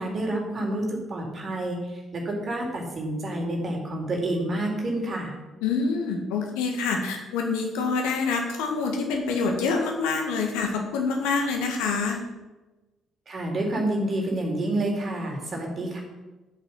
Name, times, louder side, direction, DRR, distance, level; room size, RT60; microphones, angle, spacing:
voice 1, 0.0-1.8 2.1-5.3 13.3-16.0, right 1 dB, 40° right, 0 dB, 3.9 m, -28 dB
voice 2, 5.6-12.2, left 4 dB, 70° left, 3 dB, 1.9 m, -26 dB
12.0 x 8.1 x 5.7 m, 1.1 s
figure-of-eight pair, 45°, 0 cm